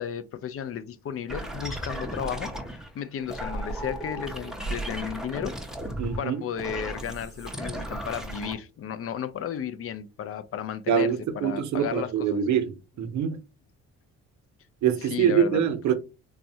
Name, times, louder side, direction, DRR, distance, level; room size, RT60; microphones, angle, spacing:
voice 1, 0.0-5.6 6.2-12.4 15.1-15.6, left 8 dB, 50° left, 0.4 m, -34 dB
sound 1, 1.3-2.9 3.2-8.6, right 1 dB, ahead, 0.6 m, -35 dB
voice 2, 6.0-6.4 10.9-13.4 14.8-15.9, right 8 dB, 70° right, 0.6 m, -24 dB
3.5 x 2.0 x 2.7 m
cardioid pair, 90°, 30 cm